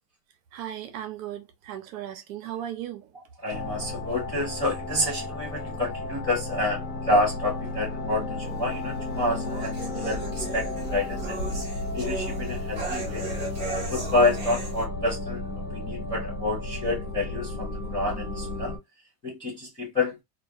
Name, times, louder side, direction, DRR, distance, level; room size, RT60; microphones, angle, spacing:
voice 1, 0.5-3.1, right 11 dB, 55° right, 0.7 m, -36 dB
voice 2, 3.4-11.4 11.9-13.3 13.7-15.5 15.7-18.7 19.2-20.2, left 2 dB, 10° left, 0.3 m, -28 dB
sound 1, 3.5-18.8, left 2 dB, 55° left, 0.9 m, -33 dB
sound 2, 8.4-14.8, right 3 dB, 20° right, 0.8 m, -37 dB
2.3 x 2.2 x 2.5 m
supercardioid pair, 155°, 49 cm